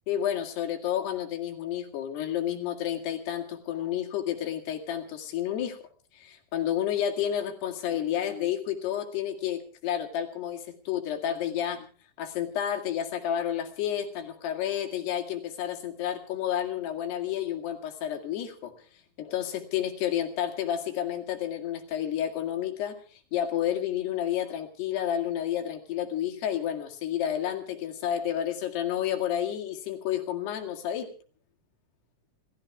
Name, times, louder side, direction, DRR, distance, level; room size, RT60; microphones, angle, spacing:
voice 1, 0.1-5.8 6.1-11.9 12.2-18.7 19.2-31.1, left 10 dB, 85° left, 3 dB, 4.2 m, -30 dB
28.5 x 13.5 x 3.6 m, 0.38 s
omnidirectional pair, 4.6 m